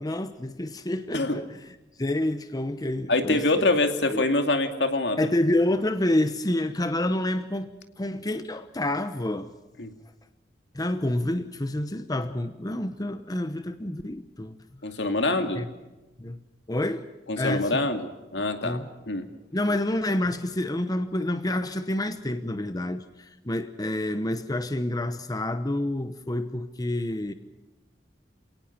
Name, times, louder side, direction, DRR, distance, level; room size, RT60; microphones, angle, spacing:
voice 1, 0.0-1.4 2.0-3.7 4.1-4.2 5.2-9.5 10.7-14.6 15.3-15.7 16.2-16.4 16.7-17.1 17.4-17.9 18.6-18.9 19.5-27.3, left 1 dB, 20° left, 1.0 m, -28 dB
voice 2, 3.1-5.3 9.8-9.9 14.8-15.6 17.3-18.8 19.1-19.2, left 2 dB, 75° left, 2.5 m, -25 dB
27.5 x 18.5 x 5.9 m
head